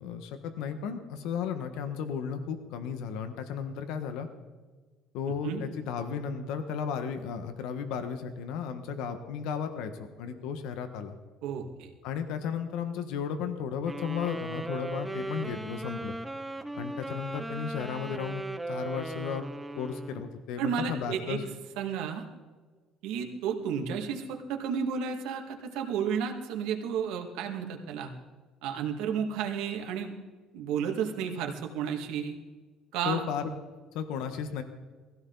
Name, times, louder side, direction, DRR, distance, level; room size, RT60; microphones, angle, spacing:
voice 1, 0.0-4.3 5.1-9.9 10.2-11.1 12.0-16.1 16.7-19.4 19.8-21.4 33.0-33.4 33.9-34.6, left 7 dB, 80° left, 8 dB, 1.4 m, -34 dB
voice 2, 11.4-11.9 20.6-21.4 21.8-22.2 23.0-28.1 28.6-30.1 30.5-32.4 32.9-33.2, right 7 dB, 85° right, 3 dB, 2.2 m, -32 dB
sound 1, 13.8-20.4, right 2 dB, 5° right, 0.6 m, -37 dB
19.5 x 15.5 x 4.0 m, 1.4 s
cardioid pair, 170°, 0 cm